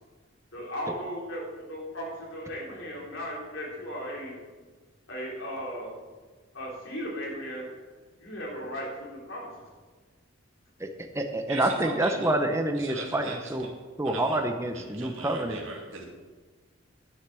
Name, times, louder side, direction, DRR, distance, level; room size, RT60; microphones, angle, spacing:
voice 1, 0.5-4.4 5.1-5.9 6.5-7.7 8.2-9.5, equal, 70° left, -4 dB, 3.7 m, -36 dB
voice 2, 10.8-13.7 14.0-15.6, right 1 dB, 15° right, 5 dB, 0.6 m, -28 dB
voice 3, 11.5-12.4 12.7-13.6 14.0-16.1, right 3 dB, 70° right, -1 dB, 2.5 m, -39 dB
10.0 x 6.5 x 7.4 m, 1.4 s
head